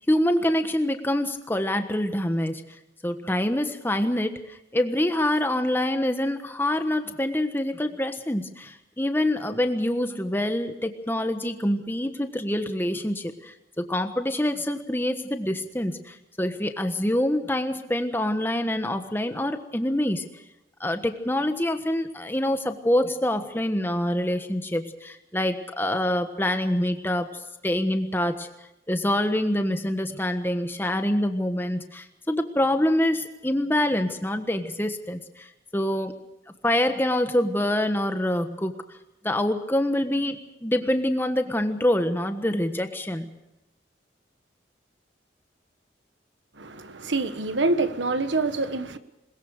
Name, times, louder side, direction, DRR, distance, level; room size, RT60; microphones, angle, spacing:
voice 1, 0.0-2.6 3.0-20.2 20.8-27.3 27.6-28.5 28.9-35.5 35.7-36.2 36.6-38.8 39.2-43.3, left 1 dB, 10° left, 1.3 m, -26 dB
voice 2, 46.6-49.0, right 3 dB, 80° right, 1.3 m, -26 dB
21.5 x 21.0 x 6.5 m
head